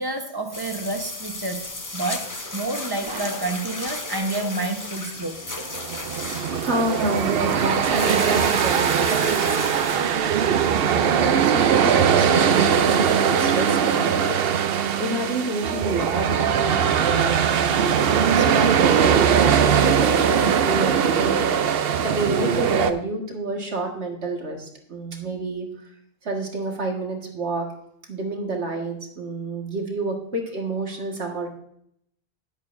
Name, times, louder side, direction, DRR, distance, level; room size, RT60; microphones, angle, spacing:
voice 1, 0.0-5.4, right 2 dB, 20° right, 5 dB, 1.1 m, -29 dB
sound 1, 0.5-10.9, left 2 dB, 20° left, 0.8 m, -34 dB
sound 2, 5.6-22.9, right 7 dB, 65° right, 0.8 m, -20 dB
voice 2, 6.3-25.7 26.2-27.7 28.1-31.5, right 2 dB, 80° right, 1 dB, 2.0 m, -29 dB
13.0 x 10.5 x 2.6 m, 0.72 s
omnidirectional pair, 1.1 m